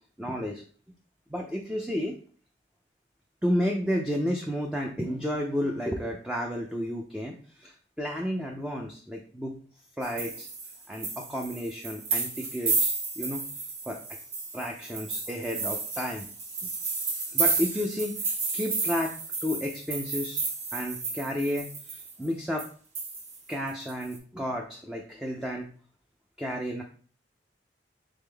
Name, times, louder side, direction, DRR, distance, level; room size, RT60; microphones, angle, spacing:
voice 1, 0.2-0.6 1.3-2.1 3.4-9.6 10.0-10.5 10.9-13.5 13.9-14.0 14.5-16.3 17.3-18.2 18.5-19.1 19.4-20.4 20.7-22.7 23.5-25.7 26.4-26.8, equal, 5° right, 0 dB, 0.4 m, -31 dB
sound 1, 10.0-22.2 22.6-22.7 23.0-24.2, right 4 dB, 40° right, 1.0 m, -32 dB
4.0 x 3.6 x 3.4 m, 0.43 s
head